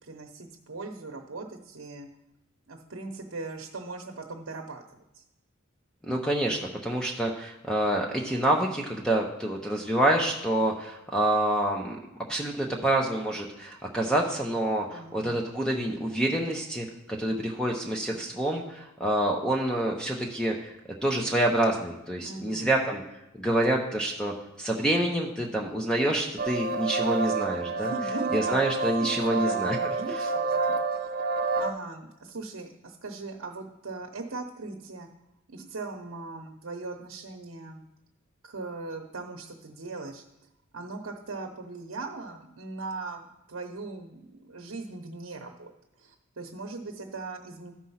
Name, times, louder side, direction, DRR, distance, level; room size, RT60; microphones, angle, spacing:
voice 1, 0.0-2.1 2.7-4.8 5.1-5.2 14.9-15.4 22.2-22.8 27.7-31.1 31.6-35.1 35.5-37.8 38.4-40.2 40.7-45.7 46.0-47.7, right 3 dB, 80° right, 3 dB, 0.9 m, -39 dB
voice 2, 6.0-12.0 12.3-20.7 21.0-23.0 23.4-27.9 28.3-29.8, right 1 dB, 5° left, 0 dB, 0.8 m, -27 dB
sound 1, 26.4-31.7, right 4 dB, 45° right, 0.8 m, -29 dB
13.0 x 4.5 x 5.6 m, 0.90 s
head